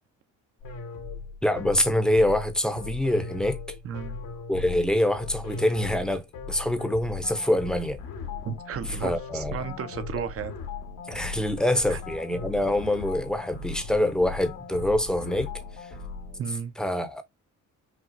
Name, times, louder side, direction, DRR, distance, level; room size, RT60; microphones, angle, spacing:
sound 1, 0.6-16.4, left 4 dB, 80° left, 1.4 m, -38 dB
voice 1, 1.4-3.6 4.5-6.2 6.5-8.0 8.9-9.6 11.1-15.5 16.8-17.2, left 1 dB, ahead, 0.7 m, -25 dB
voice 2, 3.8-4.2 8.4-10.6 11.9-12.0 16.4-16.8, right 7 dB, 45° right, 0.8 m, -34 dB
6.0 x 2.3 x 2.5 m
cardioid pair, 95°, 31 cm